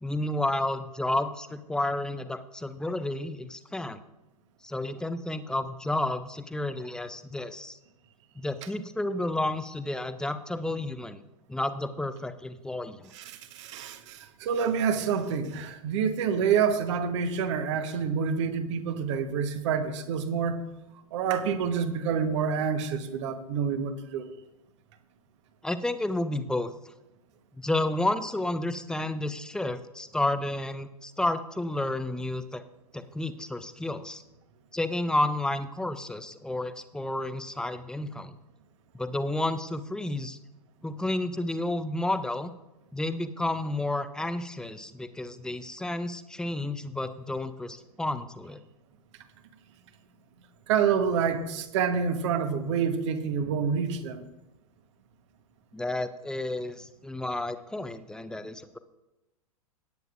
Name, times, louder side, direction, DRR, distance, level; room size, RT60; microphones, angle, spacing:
voice 1, 0.0-4.0 4.6-7.8 8.4-11.2 11.5-13.1 25.6-26.7 27.6-32.6 32.9-34.2 34.7-38.3 38.9-40.4 40.8-42.5 42.9-48.6 55.7-58.8, left 1 dB, 5° left, 11 dB, 0.6 m, -31 dB
voice 2, 13.1-20.6 21.1-24.3 50.7-54.3, right 6 dB, 55° right, 8 dB, 1.2 m, -27 dB
17.5 x 9.2 x 2.5 m, 0.98 s
figure-of-eight pair, 95°, 19 cm